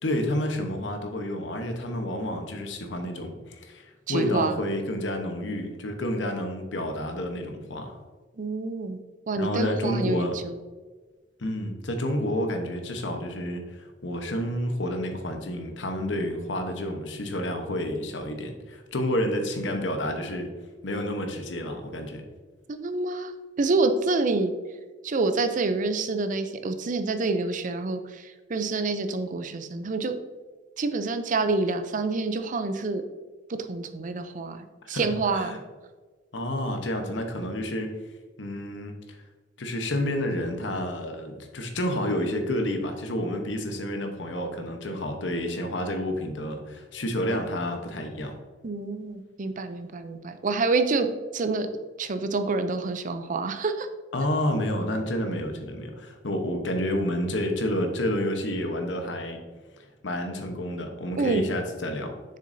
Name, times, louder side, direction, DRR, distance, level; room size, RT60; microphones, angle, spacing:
voice 1, 0.0-8.0 9.4-10.3 11.4-20.5 20.8-22.2 34.9-35.6 36.3-37.9 38.4-39.2 39.6-48.4 54.1-59.4 60.0-62.1, left 1 dB, 85° left, 5 dB, 1.0 m, -29 dB
voice 2, 4.1-4.6 8.4-9.0 9.3-10.6 22.7-24.5 25.0-30.2 30.8-33.0 33.7-35.5 48.6-51.1 51.3-51.7 52.0-53.9 61.2-61.5, right 3 dB, 45° right, 9 dB, 0.5 m, -27 dB
6.6 x 6.5 x 2.7 m, 1.4 s
head